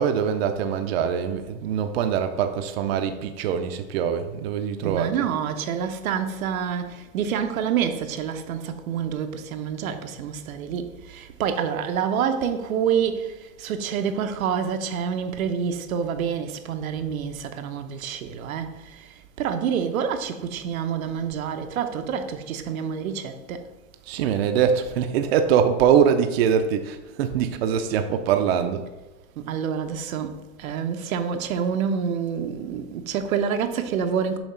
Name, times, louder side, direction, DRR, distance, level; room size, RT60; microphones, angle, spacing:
voice 1, 0.0-5.3 24.1-28.8, right 8 dB, 50° right, 0.5 m, -23 dB
voice 2, 4.8-23.7 29.4-34.4, right 7 dB, 90° right, 0.8 m, -27 dB
7.2 x 2.9 x 5.5 m
supercardioid pair, 165°, 40 cm